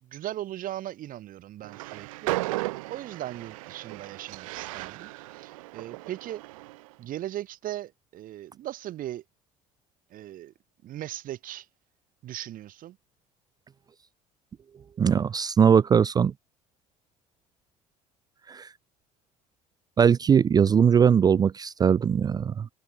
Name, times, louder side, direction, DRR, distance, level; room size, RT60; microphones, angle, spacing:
voice 1, 0.0-6.4 7.0-9.2 10.1-10.5 10.8-11.7 12.2-13.0, right 13 dB, 50° right, 4.5 m, -38 dB
Train, 1.6-6.9, right 21 dB, 65° right, 2.5 m, -35 dB
voice 2, 15.0-16.3 18.5-18.7 20.0-22.7, right 7 dB, 20° right, 0.4 m, -20 dB
figure-of-eight pair, 60°, 18 cm